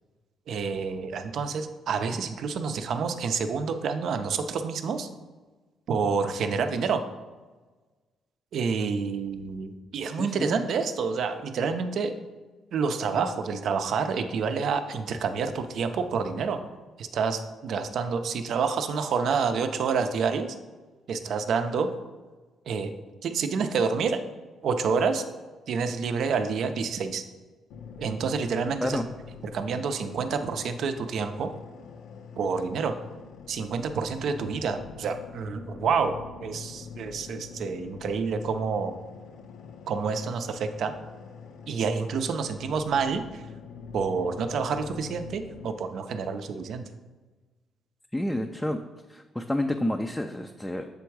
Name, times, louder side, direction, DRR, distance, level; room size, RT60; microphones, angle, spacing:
voice 1, 0.5-5.1 5.9-7.0 8.5-12.1 12.7-16.6 17.0-20.6 21.1-21.9 22.7-22.9 23.2-24.2 24.6-25.2 25.7-27.2 28.0-29.0 29.5-31.5 32.4-32.9 33.5-36.1 36.4-38.9 39.9-40.9 41.7-43.4 43.9-46.8, right 5 dB, 70° right, 8 dB, 0.5 m, -28 dB
voice 2, 10.1-10.6 28.8-29.1 48.1-48.8 49.1-50.9, left 1 dB, 10° left, 4 dB, 0.3 m, -29 dB
sound 1, 27.7-45.7, left 6 dB, 85° left, 0.6 m, -45 dB
6.8 x 3.5 x 4.7 m, 1.3 s
cardioid pair, 90°, 0 cm